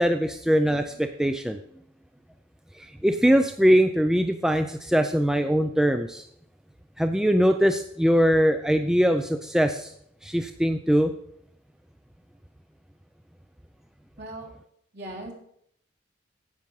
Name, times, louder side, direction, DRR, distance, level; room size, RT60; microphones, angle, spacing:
voice 1, 0.0-1.6 2.8-6.2 7.0-9.9 10.2-11.1, equal, 5° right, 7 dB, 0.4 m, -22 dB
voice 2, 14.2-14.5 14.9-15.3, right 1 dB, 55° right, -2 dB, 3.0 m, -38 dB
9.8 x 7.8 x 5.4 m, 0.70 s
head